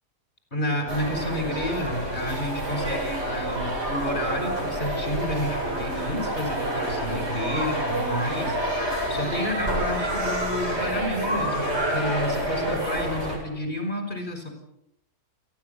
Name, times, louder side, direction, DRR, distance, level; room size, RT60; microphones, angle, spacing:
voice 1, 0.5-8.6 9.1-14.5, left 1 dB, 30° left, 5 dB, 5.6 m, -30 dB
sound 1, 0.9-13.4, right 1 dB, 40° right, 7.7 m, -28 dB
28.5 x 20.5 x 7.0 m, 0.82 s
omnidirectional pair, 1.7 m